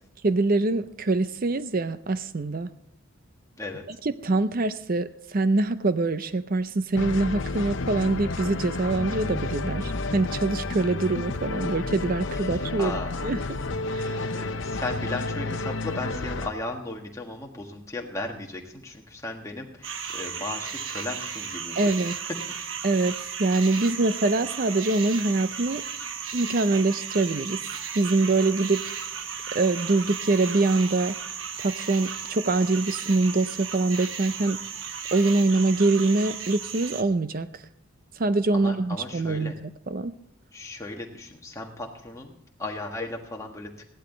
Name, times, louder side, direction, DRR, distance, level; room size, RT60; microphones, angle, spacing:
voice 1, 0.2-2.7 4.0-13.0 13.2-13.4 13.9-14.3 21.8-22.2 22.8-25.8 26.3-27.6 27.9-28.8 29.5-31.1 31.6-34.6 35.1-37.5 38.2-39.5 39.9-40.1, right 3 dB, 45° right, 13 dB, 0.6 m, -24 dB
sound 1, 6.9-16.5, left 3 dB, 60° left, 0.7 m, -31 dB
voice 2, 12.3-13.1 14.3-22.3 38.5-39.6 40.5-42.3 42.6-43.7, left 2 dB, 15° left, 0 dB, 1.5 m, -36 dB
sound 2, 19.8-37.0, right 7 dB, 65° right, 1.0 m, -35 dB
15.5 x 11.5 x 3.9 m, 0.68 s
head